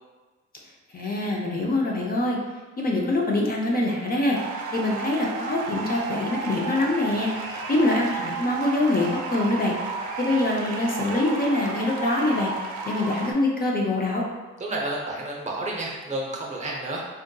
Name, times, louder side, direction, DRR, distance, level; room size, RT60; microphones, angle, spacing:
voice 1, 0.9-2.4 2.8-4.4 4.7-7.3 7.7-9.7 10.2-12.5 12.9-14.2, left 2 dB, 30° left, -2 dB, 0.5 m, -24 dB
sound 1, 4.3-13.3, right 4 dB, 75° right, 0.5 m, -32 dB
voice 2, 14.6-17.1, right 1 dB, 25° right, -2 dB, 0.6 m, -30 dB
3.6 x 2.5 x 2.2 m, 1.3 s
cardioid pair, 90°, 30 cm